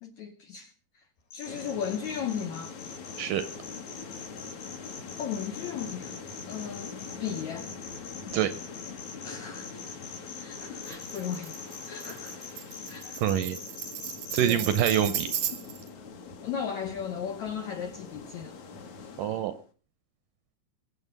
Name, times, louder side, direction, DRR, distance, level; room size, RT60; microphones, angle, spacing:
voice 1, 0.0-1.0 1.3-2.7 5.2-6.2 6.5-7.7 9.2-10.0 10.4-11.6 11.9-12.4 12.9-13.2 14.4-14.7 15.5-15.6 16.4-18.5, left 8 dB, 70° left, 1.8 m, -36 dB
sound 1, 1.3-15.3, left 5 dB, 90° left, 4.7 m, -43 dB
sound 2, 1.4-19.7, left 5 dB, 50° left, 2.8 m, -44 dB
Tambourine, 10.9-15.9, right 9 dB, 55° right, 1.5 m, -36 dB
voice 2, 13.2-13.6 14.3-15.3 19.2-19.5, right 10 dB, 75° right, 2.0 m, -25 dB
23.0 x 7.9 x 5.3 m
omnidirectional pair, 4.6 m